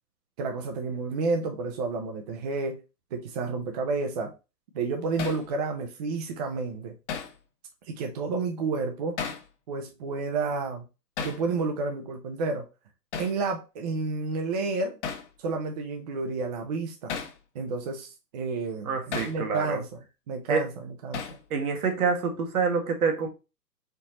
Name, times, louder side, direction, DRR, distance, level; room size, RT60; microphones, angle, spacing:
voice 1, 0.4-2.8 3.1-4.3 4.7-6.9 7.9-9.2 9.7-10.9 11.2-12.7 13.2-15.0 15.4-17.2 17.5-19.9 20.3-21.2, right 3 dB, 25° right, 0.6 m, -30 dB
Hammer, 5.2-5.5 7.1-7.4 9.2-9.5 11.2-11.4 13.1-13.4 15.0-15.3 17.1-17.4 19.1-19.4 21.1-21.4, left 6 dB, 45° left, 1.1 m, -34 dB
voice 2, 18.8-19.8 20.5-20.6 21.5-23.3, right 5 dB, 60° right, 1.6 m, -27 dB
4.4 x 4.0 x 2.9 m
hypercardioid pair, 125°, 49 cm